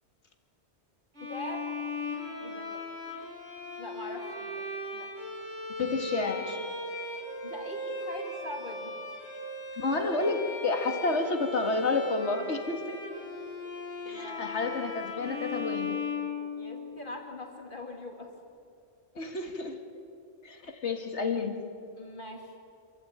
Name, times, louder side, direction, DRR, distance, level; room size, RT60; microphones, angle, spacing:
Bowed string instrument, 1.1-17.0, left 2 dB, 85° right, 5.0 m, -37 dB
voice 1, 1.2-1.7 2.4-2.8 3.8-4.6 4.9-5.1 7.4-8.9 12.9-13.0 14.0-14.4 16.6-18.3 22.0-22.5, left 1 dB, 50° left, 2 dB, 2.8 m, -42 dB
voice 2, 5.8-6.6 9.7-13.0 14.1-16.0 19.2-19.8 20.4-21.6, left 3 dB, 90° left, 5 dB, 2.2 m, -30 dB
26.0 x 13.5 x 8.8 m, 2.5 s
omnidirectional pair, 1.1 m